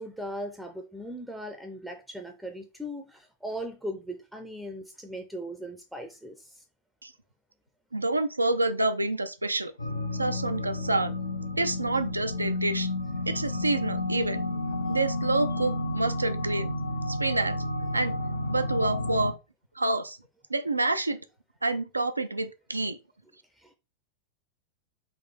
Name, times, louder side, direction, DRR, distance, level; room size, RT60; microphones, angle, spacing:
voice 1, 0.0-6.5 23.6-23.7, equal, ahead, 0.5 m, -38 dB
voice 2, 7.9-9.7 10.1-11.1 11.6-12.9 13.3-14.4 14.9-16.7 17.1-17.6 17.9-18.2 18.5-19.4 19.8-20.2 20.5-21.2 21.6-23.0, right 2 dB, 80° right, 0.4 m, -28 dB
sound 1, 9.8-19.3, left 1 dB, 75° left, 0.5 m, -31 dB
4.1 x 2.5 x 3.3 m
figure-of-eight pair, 90°, 0 cm